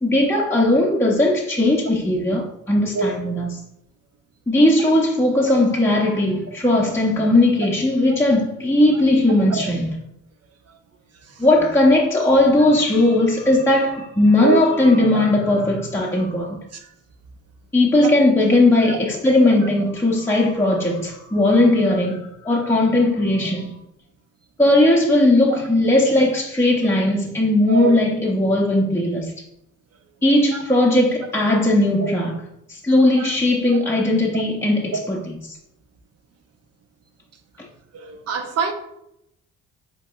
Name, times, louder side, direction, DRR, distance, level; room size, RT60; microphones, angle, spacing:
voice 1, 0.0-3.6 4.5-9.9 11.4-16.6 17.7-23.7 24.6-29.3 30.2-32.3 32.7-35.2 37.6-37.7, left 1 dB, 10° left, 0.7 m, -18 dB
voice 2, 11.1-11.5 14.4-14.6 15.1-15.2 16.7-16.9 18.0-18.1 18.9-19.0 23.4-23.5 25.5-25.6 27.7-27.9 30.5-30.6 32.0-32.1 33.1-33.3 33.7-33.8 34.3-34.4 37.9-38.7, right 5 dB, 55° right, 0.8 m, -25 dB
7.8 x 2.9 x 2.3 m
cardioid pair, 90°, 30 cm